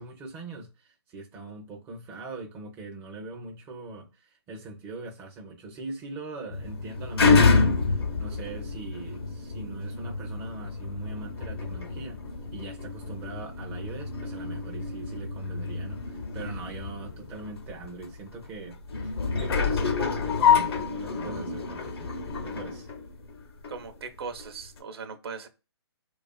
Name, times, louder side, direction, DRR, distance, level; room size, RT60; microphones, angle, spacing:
voice 1, 0.0-12.2 12.5-22.1 22.4-22.9, right 3 dB, 15° right, 0.4 m, -41 dB
sound 1, 6.5-23.8 24.4-24.5, left 5 dB, 65° left, 0.6 m, -28 dB
voice 2, 23.7-25.5, right 5 dB, 65° right, 0.7 m, -39 dB
2.4 x 2.4 x 2.3 m
figure-of-eight pair, 140°, 14 cm